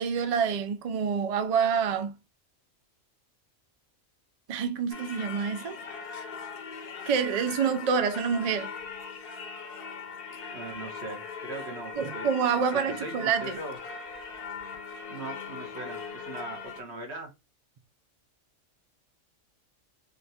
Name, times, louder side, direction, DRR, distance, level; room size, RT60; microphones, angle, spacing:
voice 1, 0.0-2.2 4.5-5.8 7.1-8.7 12.0-13.6, right 6 dB, 80° right, 0.3 m, -27 dB
Singing / Church bell, 4.9-16.8, left 5 dB, 55° left, 0.8 m, -40 dB
voice 2, 10.5-12.3 12.7-13.8 15.1-17.3, right 2 dB, 60° right, 1.2 m, -40 dB
3.7 x 2.4 x 2.7 m
omnidirectional pair, 1.3 m